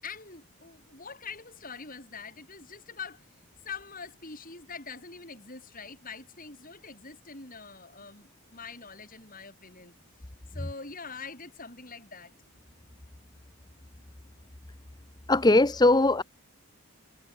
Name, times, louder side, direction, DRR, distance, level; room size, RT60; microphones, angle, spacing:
voice 1, 0.0-3.3 3.6-9.9 10.5-12.3, left 5 dB, 40° left, 7.7 m, -44 dB
voice 2, 15.3-16.2, left 2 dB, 20° left, 0.7 m, -20 dB
head